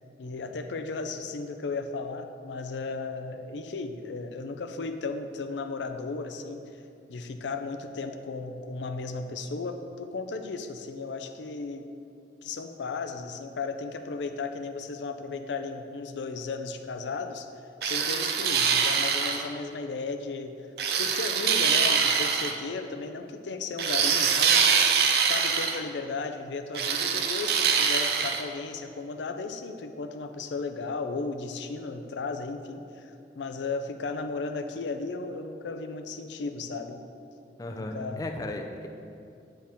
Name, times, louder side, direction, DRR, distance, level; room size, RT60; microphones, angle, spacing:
voice 1, 0.2-6.8 7.1-11.9 12.4-17.5 17.8-20.6 21.0-24.8 25.2-37.0 37.7-38.3, left 3 dB, 85° left, 7 dB, 0.5 m, -35 dB
sound 1, 17.8-19.5 20.8-22.6 23.8-25.8 26.7-28.4, right 6 dB, 60° right, 0.5 m, -24 dB
voice 2, 37.6-38.9, left 1 dB, 20° left, 4 dB, 0.4 m, -35 dB
9.0 x 4.5 x 3.5 m, 2.6 s
head